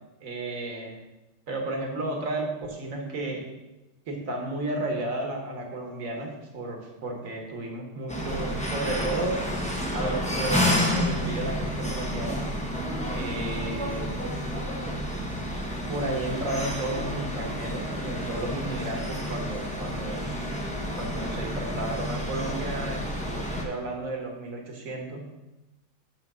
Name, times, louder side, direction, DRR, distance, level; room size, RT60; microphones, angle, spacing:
voice 1, 0.2-1.0 1.5-3.4 4.1-9.4 9.9-12.4 13.1-14.2 15.2-15.3 15.9-20.3 20.9-23.1 23.6-25.3, right 2 dB, 45° right, 2 dB, 1.5 m, -33 dB
sound 1, 8.1-23.6, equal, 5° left, 0.6 m, -30 dB
12.0 x 5.1 x 3.7 m, 1.0 s
omnidirectional pair, 2.3 m